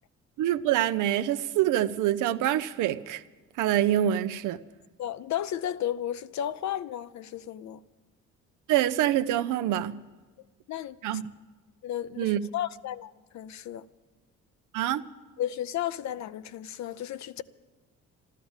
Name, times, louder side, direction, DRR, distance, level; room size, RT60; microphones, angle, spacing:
voice 1, 0.4-3.2 3.6-4.6 8.7-10.0 11.0-11.2 12.2-12.4 14.7-15.0, right 12 dB, 90° right, 0.7 m, -25 dB
voice 2, 5.0-7.8 10.7-11.0 11.8-13.9 15.4-17.4, left 11 dB, 65° left, 0.7 m, -33 dB
13.5 x 13.0 x 7.2 m
cardioid pair, 90°, 30 cm